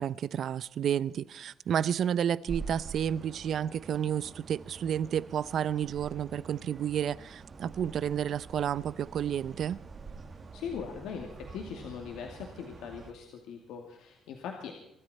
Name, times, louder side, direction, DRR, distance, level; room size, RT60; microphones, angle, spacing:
voice 1, 0.0-9.8, right 9 dB, 55° right, 0.6 m, -31 dB
sound 1, 2.5-13.1, right 4 dB, 30° right, 1.5 m, -46 dB
voice 2, 10.5-14.7, left 7 dB, 90° left, 2.5 m, -40 dB
25.0 x 13.0 x 4.3 m
cardioid pair, 145°, 0 cm